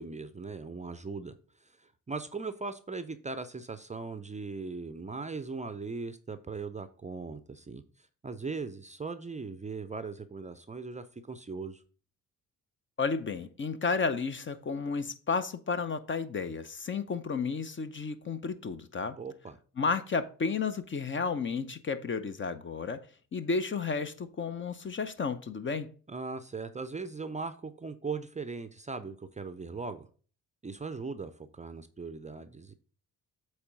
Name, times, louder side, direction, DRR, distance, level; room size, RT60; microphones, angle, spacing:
voice 1, 0.0-1.3 1.6-7.8 8.2-11.8 19.2-19.6 26.1-30.1 30.6-32.7, right 4 dB, 15° right, 0.6 m, -39 dB
voice 2, 13.0-19.2 19.8-23.0 23.3-25.9, left 5 dB, 30° left, 0.6 m, -32 dB
8.1 x 3.2 x 5.0 m
hypercardioid pair, 50°, 42 cm